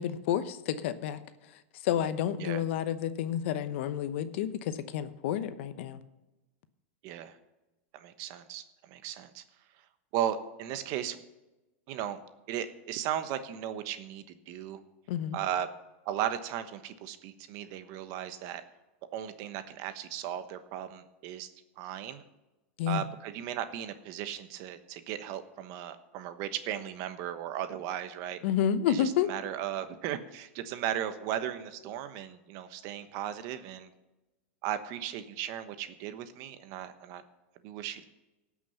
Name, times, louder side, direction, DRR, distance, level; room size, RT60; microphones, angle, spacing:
voice 1, 0.0-6.0 15.1-15.4 22.8-23.0 28.4-29.3, left 9 dB, 65° left, 12 dB, 0.9 m, -30 dB
voice 2, 7.0-7.4 7.9-9.4 10.1-11.2 11.9-12.2 12.5-14.8 15.3-15.7 16.0-18.6 19.1-21.5 21.8-22.2 22.9-28.4 28.9-33.9 34.6-37.2 37.6-38.1, right 10 dB, 50° right, 10 dB, 1.1 m, -36 dB
17.5 x 6.2 x 5.6 m, 1.0 s
hypercardioid pair, 120°, 7 cm